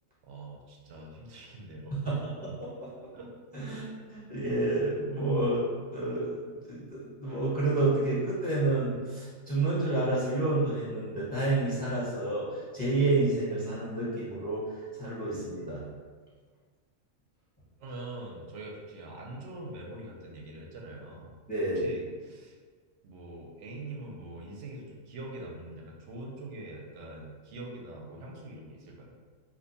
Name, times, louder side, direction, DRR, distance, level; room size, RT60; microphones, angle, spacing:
voice 1, 0.2-2.2 3.1-3.3 3.6-3.9 17.8-21.3 21.7-22.6 23.0-29.1, right 2 dB, 70° right, -1 dB, 0.9 m, -43 dB
voice 2, 2.4-2.9 3.5-3.8 4.1-5.6 5.9-15.9 21.5-21.9, right 2 dB, 10° left, -8 dB, 0.8 m, -29 dB
2.7 x 2.2 x 3.9 m, 1.5 s
omnidirectional pair, 1.4 m